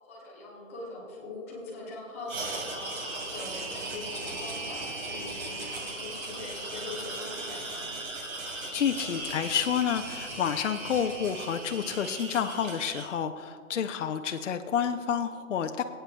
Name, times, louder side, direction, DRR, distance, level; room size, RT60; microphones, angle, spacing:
voice 1, 0.0-2.9 3.3-7.9, left 2 dB, 10° left, -4 dB, 0.8 m, -42 dB
sound 1, 2.3-13.1, right 2 dB, 75° right, 3.1 m, -37 dB
voice 2, 8.7-15.8, left 8 dB, 65° left, 7 dB, 0.6 m, -29 dB
25.0 x 8.8 x 2.2 m, 2.2 s
hypercardioid pair, 170°, 40 cm